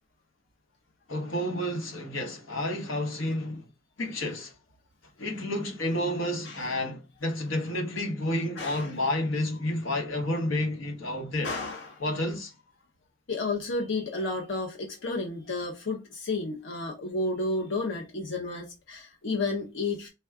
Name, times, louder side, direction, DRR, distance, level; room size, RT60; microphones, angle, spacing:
voice 1, 1.1-3.7 4.0-4.5 5.2-11.5 12.0-12.5, left 1 dB, 85° left, 1.0 m, -30 dB
voice 2, 8.6-9.0 11.4-12.0 13.3-20.1, left 2 dB, 60° left, 0.7 m, -32 dB
4.4 x 2.2 x 3.4 m
head